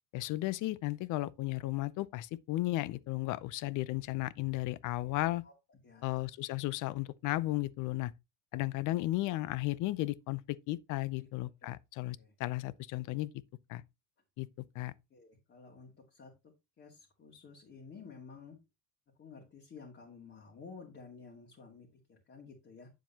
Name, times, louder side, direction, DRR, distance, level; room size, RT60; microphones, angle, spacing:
voice 1, 0.1-5.5 6.0-8.1 8.5-13.3 13.7-13.8 14.4-14.5 14.7-14.9, left 18 dB, 60° left, 0.6 m, -34 dB
voice 2, 5.8-6.2 11.2-11.3 12.2-12.3 15.1-16.3 16.8-18.6 19.2-22.9, left 5 dB, 35° left, 2.5 m, -52 dB
9.3 x 7.5 x 2.9 m
cardioid pair, 140°, 35 cm